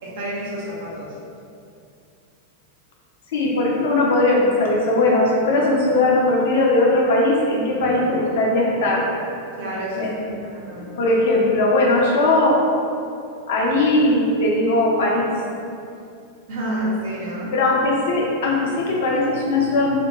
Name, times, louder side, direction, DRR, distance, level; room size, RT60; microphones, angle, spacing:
voice 1, 0.0-1.1 9.6-10.1 10.4-10.9 16.5-17.5, right 1 dB, 50° right, -5 dB, 0.7 m, -28 dB
voice 2, 3.3-9.1 10.0-10.4 10.6-12.6 13.5-15.3 17.5-19.9, left 2 dB, 55° left, -2 dB, 0.5 m, -19 dB
2.5 x 2.1 x 2.8 m, 2.5 s
figure-of-eight pair, 90°, 0 cm